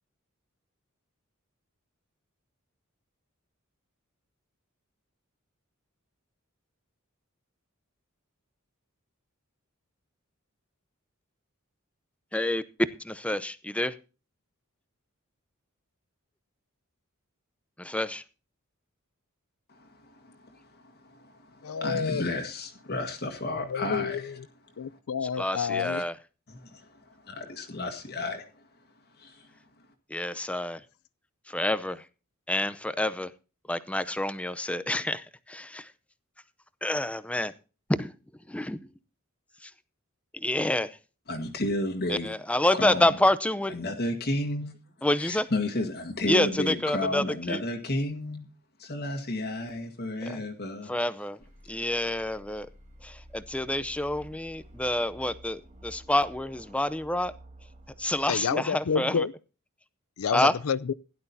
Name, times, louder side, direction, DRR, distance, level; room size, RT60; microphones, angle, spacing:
voice 1, 12.3-12.6 13.0-13.9 17.8-18.2 25.4-26.2 30.1-30.8 31.5-32.0 32.5-33.3 33.7-35.9 36.8-37.5 38.0-38.1 38.5-38.8 39.6-39.7 40.3-41.0 42.1-43.8 45.0-45.5 46.3-47.6 50.3-50.4 50.9-51.4 51.7-52.7 53.0-57.3 58.0-59.3 60.3-60.5, left 1 dB, 5° left, 0.6 m, -28 dB
voice 2, 19.7-24.4 25.8-26.0 26.5-28.6 29.2-29.5 41.3-42.3 42.7-43.2 43.7-44.8 45.2-48.5 48.8-50.9, left 1 dB, 50° left, 1.6 m, -32 dB
voice 3, 21.6-22.3 23.7-24.4 24.8-26.0 58.3-59.3 60.2-60.9, left 6 dB, 80° left, 0.5 m, -29 dB
sound 1, 51.4-58.3, right 1 dB, 35° right, 2.1 m, -51 dB
16.5 x 11.0 x 2.7 m
head